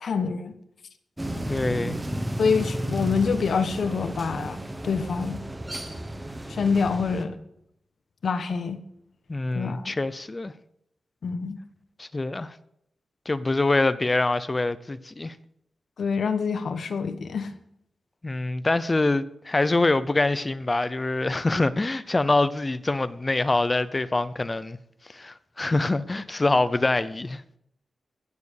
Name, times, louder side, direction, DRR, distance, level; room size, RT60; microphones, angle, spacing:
voice 1, 0.0-0.5 2.4-4.6 4.8-5.4 6.5-7.4 8.2-8.8 9.5-9.9 11.2-11.6 16.0-17.5, left 5 dB, 60° left, 1.2 m, -26 dB
sound 1, 1.2-7.2, right 1 dB, 10° right, 1.1 m, -33 dB
voice 2, 1.4-2.0 9.3-10.5 12.0-12.5 13.3-15.3 18.2-24.8 25.1-27.4, left 2 dB, 20° left, 0.6 m, -25 dB
16.5 x 7.6 x 6.5 m
wide cardioid pair, 160°, 0 cm